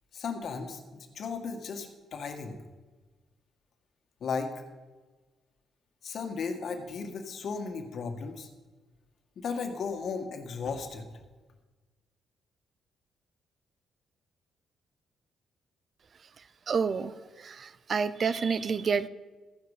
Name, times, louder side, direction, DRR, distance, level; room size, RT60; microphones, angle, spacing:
voice 1, 0.1-2.6 4.2-4.5 6.0-8.5 9.3-11.1, left 5 dB, 60° left, 5 dB, 1.8 m, -35 dB
voice 2, 16.7-17.1 17.4-19.1, right 5 dB, 45° right, 15 dB, 0.6 m, -29 dB
14.5 x 9.7 x 5.0 m, 1.3 s
cardioid pair, 90°, 0 cm